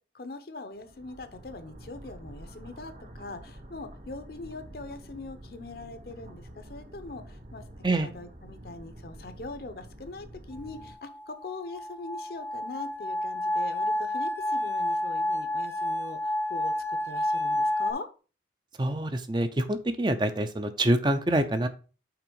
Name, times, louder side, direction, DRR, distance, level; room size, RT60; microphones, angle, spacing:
voice 1, 0.1-7.6 7.9-18.1, left 2 dB, 55° left, 10 dB, 0.8 m, -42 dB
sound 1, 0.8-11.0, right 1 dB, 45° right, 1.0 m, -47 dB
sound 2, 10.8-17.9, left 1 dB, 10° left, 0.7 m, -29 dB
voice 2, 18.8-21.7, right 1 dB, 25° right, 9 dB, 0.5 m, -26 dB
5.9 x 3.9 x 5.4 m, 0.36 s
head